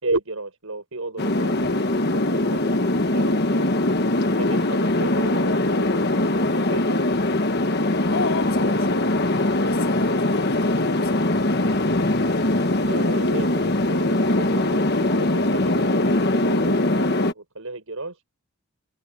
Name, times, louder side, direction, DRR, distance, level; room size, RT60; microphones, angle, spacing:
voice 1, 0.0-3.7 4.3-6.1 6.5-7.1 12.8-18.2, right 2 dB, 75° right, 5.6 m, -33 dB
sound 1, 1.2-17.3, left 1 dB, 50° left, 1.3 m, -21 dB
voice 2, 8.1-12.3, left 3 dB, 65° left, 2.8 m, -34 dB
head